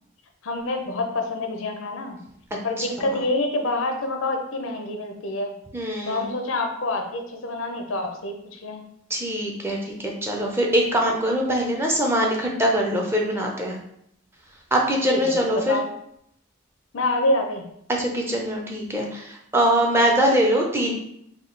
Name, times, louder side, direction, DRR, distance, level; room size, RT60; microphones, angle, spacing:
voice 1, 0.4-2.2 2.6-5.5 6.0-8.8 15.1-15.2 15.7-15.9 16.9-17.6, left 2 dB, 85° left, 4 dB, 0.6 m, -26 dB
voice 2, 5.7-6.3 9.1-13.8 14.7-15.8 17.9-20.9, equal, 10° right, -1 dB, 0.5 m, -23 dB
3.5 x 2.3 x 3.8 m, 0.74 s
head